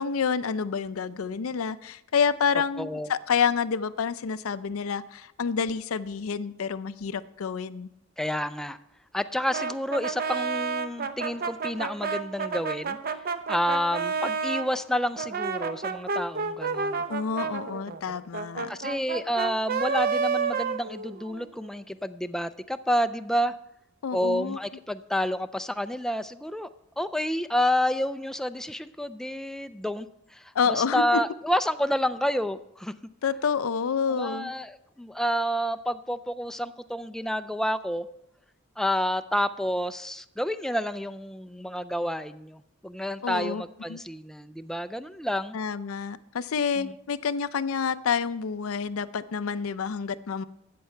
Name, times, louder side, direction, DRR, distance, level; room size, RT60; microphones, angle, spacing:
voice 1, 0.0-7.9 17.1-18.8 24.0-24.6 30.5-31.2 33.2-34.5 43.2-43.6 43.9-44.0 45.5-50.4, left 6 dB, 80° left, 14 dB, 0.5 m, -28 dB
voice 2, 2.8-3.1 8.2-8.8 9.1-13.0 13.5-17.0 18.7-23.5 24.1-26.7 27.0-30.1 30.3-32.9 34.1-38.1 38.8-45.6 46.8-46.9, equal, ahead, 10 dB, 0.3 m, -29 dB
Brass instrument, 9.5-14.7 15.2-21.5, right 5 dB, 45° right, 0.7 m, -30 dB
13.5 x 8.6 x 4.4 m, 0.82 s
head